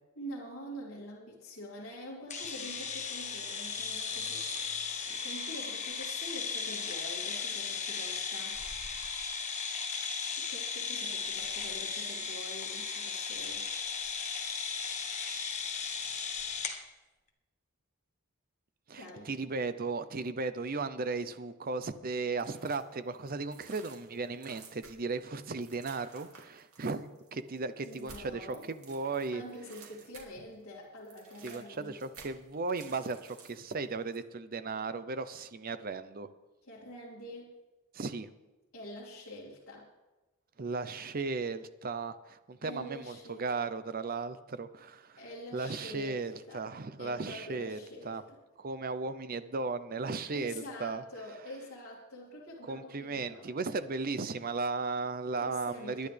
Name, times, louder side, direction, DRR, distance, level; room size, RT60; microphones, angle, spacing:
voice 1, 0.2-4.5 5.0-8.6 10.3-13.6 19.0-19.3 27.8-28.7 29.3-31.9 36.6-37.5 38.7-39.9 42.6-43.5 45.2-46.7 47.0-48.4 50.3-53.8 55.4-56.1, equal, 65° left, -7 dB, 2.8 m, -46 dB
sound 1, 2.3-16.8, left 5 dB, 35° left, 1.3 m, -36 dB
voice 2, 18.9-29.4 31.4-36.3 37.9-38.3 40.6-45.2 45.5-48.2 48.6-51.0 52.6-56.1, right 3 dB, 45° right, 12 dB, 0.6 m, -36 dB
sound 2, 22.4-22.9 23.3-30.5 30.8-33.7 34.1-34.2, right 5 dB, 85° right, 2.5 m, -54 dB
21.5 x 10.5 x 3.4 m, 1.1 s
head